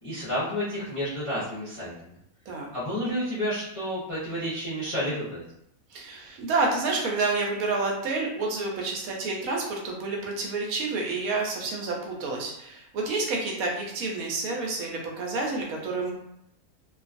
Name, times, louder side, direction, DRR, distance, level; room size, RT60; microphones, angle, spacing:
voice 1, 0.0-2.2 2.7-5.4, equal, 30° left, -11 dB, 0.6 m, -30 dB
voice 2, 5.9-16.1, right 3 dB, 80° right, 0 dB, 1.1 m, -29 dB
2.5 x 2.3 x 2.4 m, 0.77 s
omnidirectional pair, 1.5 m